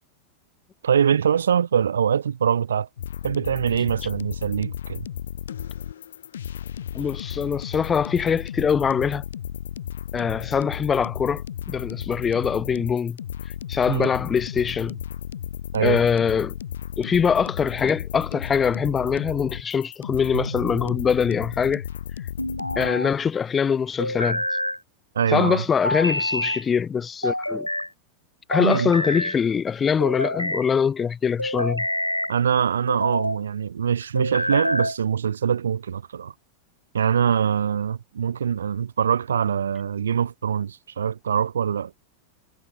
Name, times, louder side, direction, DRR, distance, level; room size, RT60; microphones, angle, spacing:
voice 1, 0.8-2.9 3.2-5.1 13.9-14.1 15.7-16.0 25.1-25.6 28.6-28.9 32.3-36.3 36.9-41.9, right 8 dB, 70° right, 3.9 m, -23 dB
sound 1, 3.0-22.9, left 9 dB, 65° left, 5.5 m, -34 dB
voice 2, 6.9-9.2 10.1-13.2 13.7-15.0 15.8-16.5 17.0-21.8 22.8-24.4 25.3-27.7 28.5-31.8, left 6 dB, 20° left, 3.1 m, -23 dB
sound 2, 20.3-21.0 22.4-23.2 24.0-24.8 25.8-26.6 27.2-27.9 28.5-29.4 30.0-30.7 31.4-32.3 32.9-33.4 34.2-35.0, left 1 dB, 90° left, 3.3 m, -27 dB
figure-of-eight pair, 90°, 0 cm